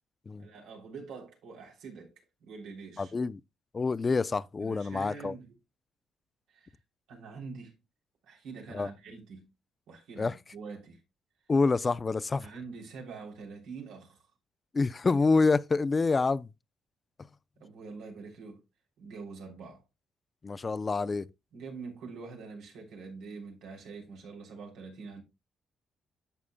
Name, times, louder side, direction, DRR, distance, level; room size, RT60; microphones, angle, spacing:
voice 1, 0.4-2.1 2.4-3.1 4.6-5.6 6.5-6.8 7.1-7.7 8.3-9.5 9.9-11.0 12.4-14.2 17.6-18.6 19.0-19.8 21.5-25.2, right 4 dB, 90° right, 3.2 m, -45 dB
voice 2, 3.0-3.4 3.7-5.3 8.7-8.9 10.2-10.3 11.5-12.5 14.7-16.5 20.4-21.3, left 4 dB, 30° left, 0.5 m, -27 dB
11.0 x 7.1 x 2.2 m
cardioid pair, 90°, 0 cm